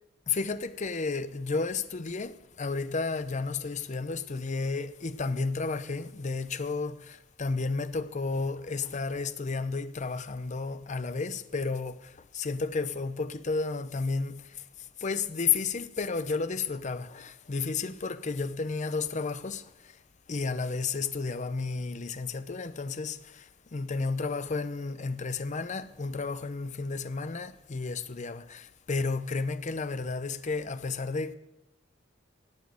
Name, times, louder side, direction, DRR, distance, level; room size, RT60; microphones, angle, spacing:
voice 1, 0.3-14.4 15.0-19.7 20.3-23.4 23.7-31.3, left 4 dB, 40° left, 0.6 m, -32 dB
18.5 x 7.4 x 6.5 m
head